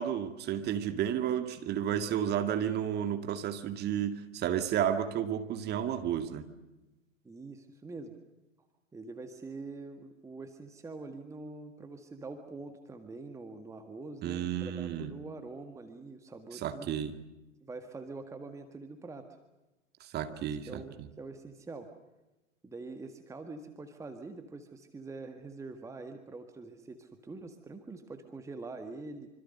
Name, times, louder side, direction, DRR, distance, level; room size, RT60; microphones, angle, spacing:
voice 1, 0.0-6.4 14.2-15.1 16.5-17.2 20.0-20.8, right 9 dB, 25° right, 8 dB, 2.2 m, -32 dB
voice 2, 7.2-8.1 8.9-16.9 17.6-19.3 20.3-20.4 20.7-21.9 22.6-29.3, right 3 dB, 5° right, 6 dB, 1.7 m, -45 dB
26.0 x 26.0 x 6.6 m, 1.0 s
figure-of-eight pair, 105°, 40 cm